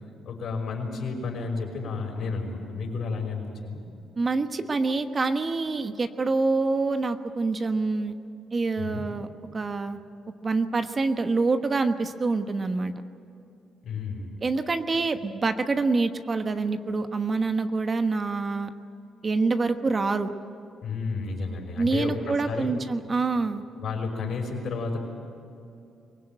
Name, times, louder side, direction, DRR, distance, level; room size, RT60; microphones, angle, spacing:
voice 1, 0.2-3.8 8.8-9.1 13.8-14.3 20.8-22.8 23.7-25.0, left 4 dB, 65° left, 2 dB, 5.7 m, -31 dB
voice 2, 4.2-8.1 8.5-10.0 10.4-12.9 14.4-18.7 19.2-20.3 21.8-23.6, right 3 dB, 35° right, 8 dB, 1.2 m, -26 dB
23.5 x 19.0 x 9.0 m, 2.7 s
cardioid pair, 90°, 0 cm